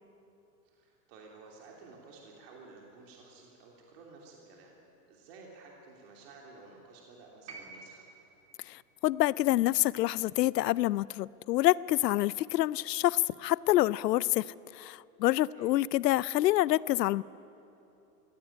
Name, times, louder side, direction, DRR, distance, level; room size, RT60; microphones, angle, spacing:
voice 1, 0.6-4.7 5.1-8.1 15.5-15.7, right 3 dB, 40° right, -1 dB, 3.1 m, -53 dB
sound 1, 7.5-11.6 12.8-12.9, right 4 dB, 70° right, 4.2 m, -53 dB
voice 2, 8.7-14.5 14.7-17.2, left 15 dB, 85° left, 21 dB, 0.7 m, -27 dB
22.5 x 16.5 x 9.9 m, 3.0 s
supercardioid pair, 180°, 48 cm